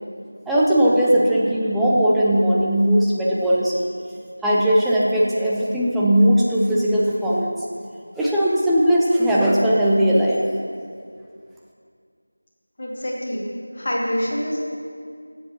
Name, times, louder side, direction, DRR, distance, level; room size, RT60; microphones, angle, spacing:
voice 1, 0.5-3.9 4.4-7.5 8.2-10.4, equal, ahead, -7 dB, 0.4 m, -18 dB
voice 2, 12.8-13.5 13.7-14.6, equal, 35° left, -3 dB, 1.6 m, -26 dB
13.0 x 7.6 x 3.0 m, 2.2 s
figure-of-eight pair, 175°, 0 cm